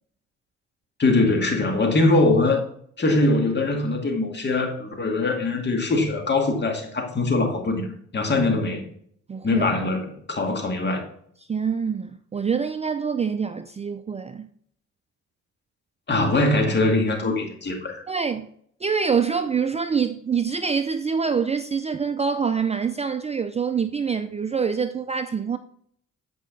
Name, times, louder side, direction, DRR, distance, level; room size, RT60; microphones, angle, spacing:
voice 1, 1.0-2.6 3.0-7.9 8.1-8.8 9.4-11.0 16.1-18.0, left 2 dB, 35° left, 2.1 m, -22 dB
voice 2, 9.3-9.7 11.5-14.5 18.1-18.5 18.8-25.6, right 6 dB, 20° right, 0.4 m, -25 dB
8.5 x 5.1 x 4.0 m
cardioid pair, 90°, 30 cm